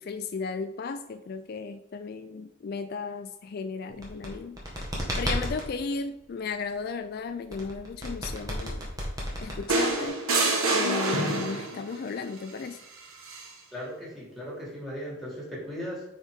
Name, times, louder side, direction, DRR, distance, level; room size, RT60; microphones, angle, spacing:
voice 1, 0.0-4.9 5.2-8.9 9.4-10.2 10.7-12.8, left 4 dB, 45° left, 8 dB, 0.3 m, -35 dB
sound 1, 3.9-5.7 7.5-10.1, equal, 15° right, 1.6 m, -33 dB
sound 2, 9.7-11.8 13.2-13.5, right 2 dB, 75° right, 1.4 m, -26 dB
voice 2, 13.7-16.1, equal, ahead, -5 dB, 2.6 m, -37 dB
8.9 x 4.6 x 3.7 m, 0.92 s
head